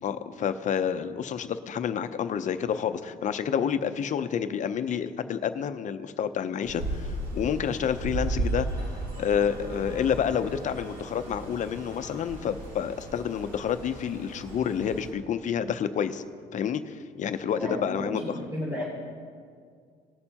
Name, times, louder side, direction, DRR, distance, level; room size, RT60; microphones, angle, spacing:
voice 1, 0.0-8.9 9.2-16.2 16.5-18.2, left 8 dB, 45° left, 11 dB, 0.6 m, -29 dB
Windy Stormy night, 6.6-15.1, right 2 dB, 55° right, 2.1 m, -35 dB
voice 2, 17.6-18.8, equal, 20° right, -8 dB, 3.0 m, -33 dB
19.0 x 6.7 x 2.9 m, 2.1 s
cardioid pair, 110°, 17 cm